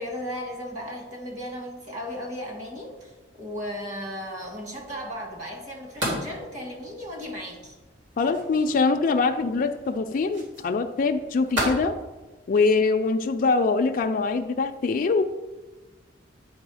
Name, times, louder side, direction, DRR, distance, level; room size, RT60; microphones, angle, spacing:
voice 1, 0.0-3.1 3.4-7.8, equal, 40° right, 1 dB, 1.8 m, -35 dB
sound 1, 4.4-11.7, equal, 70° right, 2.6 m, -36 dB
voice 2, 8.2-12.0 12.5-15.2, left 4 dB, 45° left, 5 dB, 0.4 m, -23 dB
8.7 x 4.5 x 4.8 m, 1.2 s
head